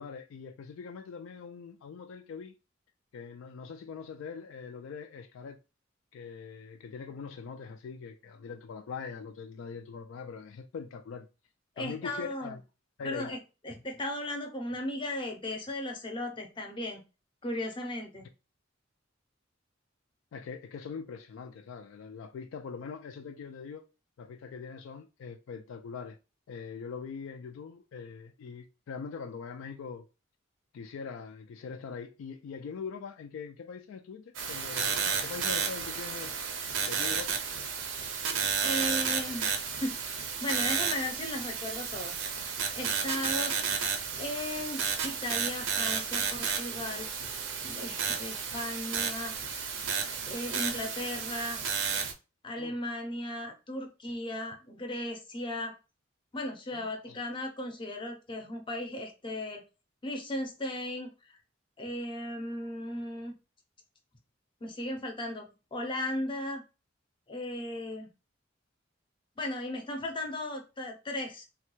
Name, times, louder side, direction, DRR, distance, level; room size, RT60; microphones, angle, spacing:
voice 1, 0.0-2.6 3.1-5.6 6.1-11.3 11.8-12.6 13.0-13.3 20.3-23.9 24.2-26.2 26.5-30.0 30.7-36.3 36.9-37.4 52.6-52.8 56.7-57.2, left 5 dB, 80° left, 0.3 m, -42 dB
voice 2, 11.8-12.6 13.0-13.4 13.6-17.0 17.4-18.3 38.6-40.0 40.4-42.2 42.7-43.6 44.2-47.1 47.6-49.3 50.1-51.6 52.4-55.8 56.3-59.6 60.0-61.1 61.8-63.3 64.6-66.6 67.3-68.1 69.4-71.4, left 1 dB, 25° left, 0.6 m, -36 dB
sound 1, 34.3-52.1, right 6 dB, 70° right, 0.5 m, -32 dB
3.1 x 2.2 x 3.0 m
head